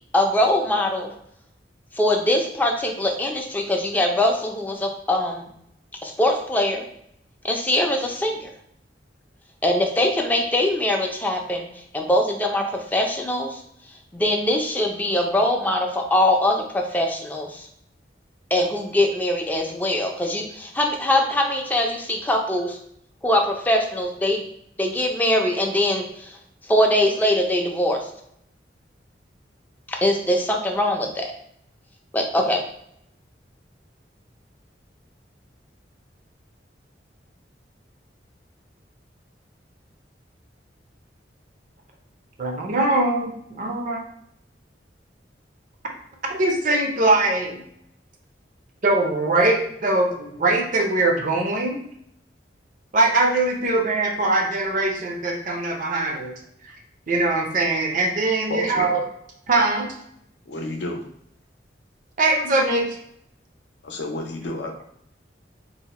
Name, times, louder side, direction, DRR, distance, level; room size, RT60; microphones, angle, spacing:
voice 1, 0.1-1.1 1.9-5.5 6.0-6.8 7.4-8.5 9.6-11.7 11.9-13.6 14.1-17.7 18.5-22.8 23.2-24.4 24.8-26.4 26.7-28.0 30.0-31.3 32.1-32.6, left 1 dB, 10° left, 1 dB, 0.4 m, -22 dB
voice 2, 42.4-44.0 46.3-47.6 48.8-51.8 52.9-56.3 56.6-56.7 57.1-59.0 59.5-59.9 62.2-63.0, right 2 dB, 45° right, 2 dB, 0.6 m, -22 dB
voice 3, 58.5-59.0 60.5-61.0 63.8-64.8, left 2 dB, 75° left, 2 dB, 0.6 m, -30 dB
2.7 x 2.1 x 4.0 m, 0.71 s
head